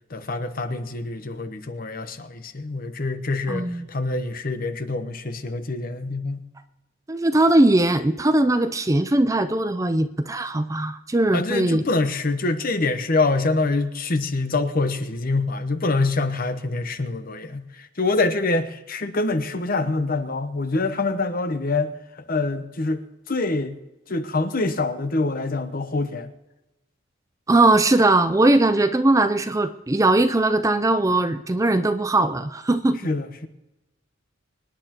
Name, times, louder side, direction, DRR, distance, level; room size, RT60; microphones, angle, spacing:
voice 1, 0.1-6.4 11.3-21.9 22.3-23.7 24.1-26.3 33.0-33.5, left 3 dB, 45° left, 0.9 m, -25 dB
voice 2, 3.5-3.9 7.1-11.8 27.5-33.0, right 2 dB, 15° right, 0.4 m, -20 dB
25.0 x 10.0 x 2.9 m
head